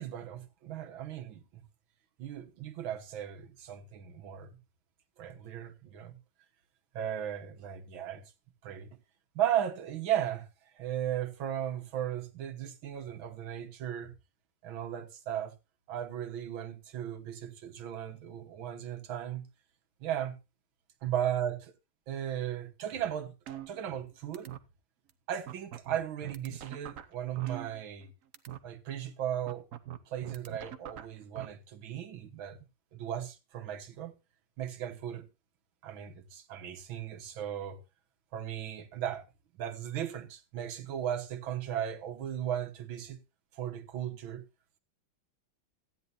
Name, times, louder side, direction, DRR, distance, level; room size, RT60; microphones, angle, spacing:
voice 1, 0.0-1.4 2.2-4.6 5.2-6.2 6.9-8.3 8.6-8.9 9.4-10.5 10.8-14.1 14.6-15.5 15.9-19.5 20.0-20.4 21.0-21.7 22.1-24.5 25.3-28.1 28.6-29.7 30.1-32.6 32.9-34.1 34.6-35.3 35.8-37.8 38.3-39.2 39.6-43.2 43.5-44.4, right 10 dB, 80° right, 2.0 m, -36 dB
sound 1, 23.5-24.1 24.3-24.6 25.1-25.2 25.5-28.1 28.3-28.6 29.5-31.5, right 11 dB, 55° right, 0.9 m, -42 dB
15.5 x 10.0 x 2.6 m
omnidirectional pair, 2.2 m